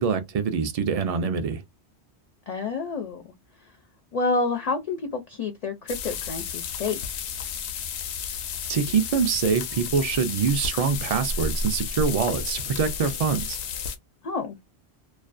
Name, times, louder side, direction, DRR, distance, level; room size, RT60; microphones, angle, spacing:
voice 1, 0.0-1.6 8.7-13.6, right 6 dB, 65° right, 0.3 m, -24 dB
voice 2, 2.5-3.3 4.1-7.0 14.2-14.6, left 3 dB, 60° left, 0.4 m, -28 dB
sound 1, 5.9-14.0, left 5 dB, 90° left, 0.9 m, -32 dB
2.4 x 2.2 x 2.4 m
omnidirectional pair, 1.1 m